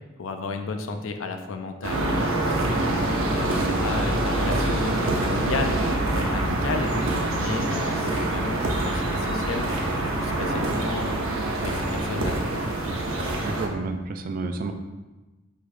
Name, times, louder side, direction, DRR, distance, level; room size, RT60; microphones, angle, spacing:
voice 1, 0.2-6.9 7.3-11.3 11.6-12.5, left 3 dB, 80° left, 6 dB, 0.5 m, -33 dB
sound 1, 1.8-13.7, right 1 dB, 85° right, 0.8 m, -25 dB
voice 2, 13.4-14.7, right 3 dB, 45° right, 6 dB, 0.4 m, -30 dB
4.6 x 4.6 x 2.5 m, 1.2 s
head